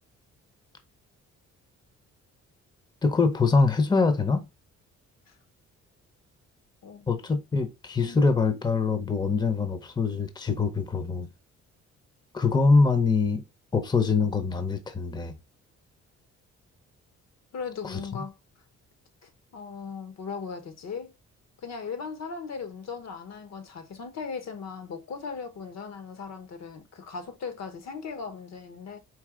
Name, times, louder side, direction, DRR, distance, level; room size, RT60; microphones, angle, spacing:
voice 1, 3.0-4.4 7.1-11.3 12.3-13.4 13.7-15.3 17.8-18.2, left 4 dB, 15° left, 0.7 m, -24 dB
voice 2, 6.8-7.2 8.0-8.2 17.5-18.3 19.2-21.1 21.6-29.0, left 5 dB, 60° left, 1.0 m, -38 dB
4.6 x 2.7 x 3.7 m
cardioid pair, 90°, 30 cm